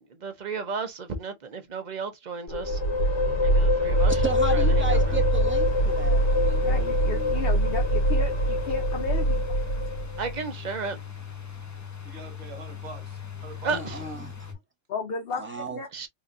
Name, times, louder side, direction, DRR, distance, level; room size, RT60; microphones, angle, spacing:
voice 1, 0.1-2.8 3.4-4.2 4.5-5.2 10.2-11.0 13.6-14.0 15.9-16.1, right 4 dB, 45° right, 0.8 m, -33 dB
sound 1, 2.5-10.3, equal, 85° left, 1.5 m, -23 dB
sound 2, 4.0-14.5, left 5 dB, 20° left, 0.4 m, -38 dB
voice 2, 4.2-7.3 13.7-14.3 15.4-15.8, right 2 dB, 10° right, 0.9 m, -33 dB
voice 3, 6.6-9.4 9.7-9.9 14.9-15.4 15.7-15.9, left 4 dB, 60° left, 0.9 m, -33 dB
voice 4, 12.0-14.2, right 3 dB, 65° right, 1.4 m, -45 dB
4.2 x 2.4 x 2.5 m
omnidirectional pair, 1.2 m